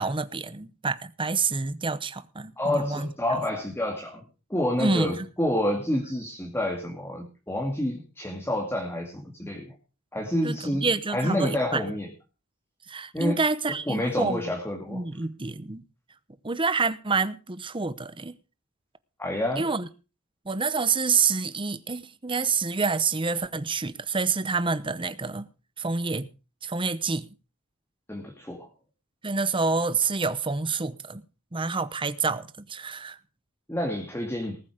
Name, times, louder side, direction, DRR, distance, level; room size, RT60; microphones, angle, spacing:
voice 1, 0.0-3.1 4.8-5.3 10.4-11.8 12.9-14.5 14.9-15.8 16.4-18.3 19.6-19.9 20.4-25.5 25.8-26.3 26.6-27.3 29.2-31.2 31.5-33.2, right 4 dB, 25° right, 0.9 m, -27 dB
voice 2, 2.6-4.2 4.5-9.7 10.1-12.1 13.1-13.4 13.9-15.0 19.2-19.7 28.1-28.7 33.7-34.6, left 1 dB, 10° left, 2.4 m, -28 dB
19.5 x 8.4 x 5.1 m
head